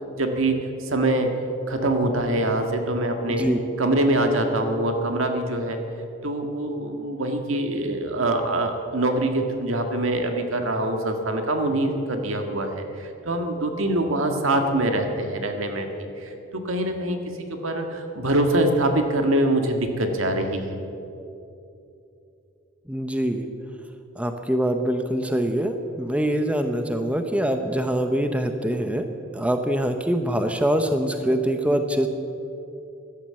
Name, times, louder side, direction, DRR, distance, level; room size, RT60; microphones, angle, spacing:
voice 1, 0.1-0.5 0.8-1.3 1.7-3.4 3.8-5.8 6.2-15.9 16.2-20.8, right 1 dB, 80° right, 5 dB, 1.7 m, -24 dB
voice 2, 3.3-3.6 22.9-23.5 24.2-29.1 29.3-32.1, right 1 dB, 5° right, 6 dB, 0.7 m, -24 dB
15.0 x 12.0 x 7.6 m, 2.8 s
head